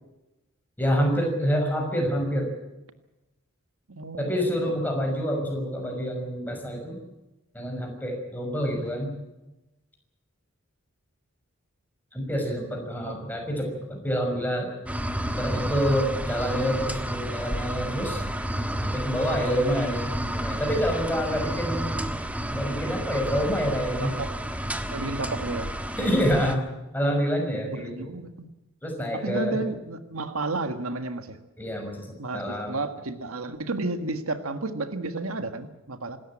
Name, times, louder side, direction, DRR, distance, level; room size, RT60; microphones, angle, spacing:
voice 1, 0.8-2.5 4.2-7.0 7.5-9.1 12.1-14.7 15.3-18.2 18.8-22.1 22.5-24.1 26.0-26.6 26.9-28.1 28.8-29.6 31.6-32.1 32.3-32.7, equal, 10° left, 2 dB, 6.0 m, -27 dB
voice 2, 3.9-4.5 4.9-5.4 8.7-8.8 13.1-13.2 24.0-24.4 24.9-25.7 27.7-28.5 29.1-31.4 32.2-36.2, right 3 dB, 85° right, 9 dB, 1.7 m, -32 dB
sound 1, 14.9-26.6, equal, 5° right, 1.5 m, -31 dB
26.0 x 13.5 x 8.8 m, 0.99 s
head